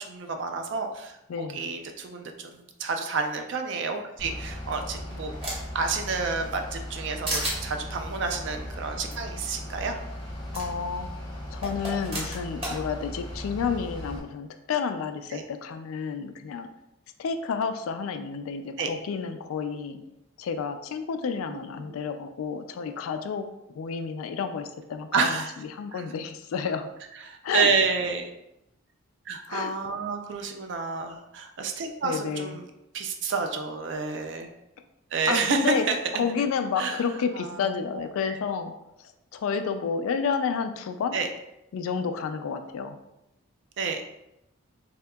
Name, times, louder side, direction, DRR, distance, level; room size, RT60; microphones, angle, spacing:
voice 1, 0.0-1.1 1.4-2.5 2.8-5.3 5.7-10.0 15.3-15.4 18.8-18.9 21.4-21.9 25.1-25.5 25.9-26.0 27.2-28.3 29.3-32.6 32.9-34.5 35.1-36.0 36.8-37.0 37.3-38.3 41.1-41.3 43.8-44.0, right 4 dB, 55° right, 5 dB, 0.4 m, -29 dB
voice 2, 1.3-1.7 10.5-11.1 11.5-16.7 17.2-20.0 20.4-23.5 23.8-26.9 27.4-27.7 29.5-29.7 32.0-32.6 35.3-35.9 36.2-38.7 39.3-41.2 41.7-43.0, left 6 dB, 80° left, 8 dB, 0.3 m, -30 dB
Bus / Idling, 4.2-14.2, left 1 dB, 20° left, 0.5 m, -38 dB
sound 1, 4.4-5.8 6.2-7.0 7.3-7.6 9.1-9.2 9.4-9.5 10.5-10.6 11.6-12.8, right 1 dB, 25° right, 0.8 m, -32 dB
3.5 x 2.7 x 2.2 m, 0.87 s
head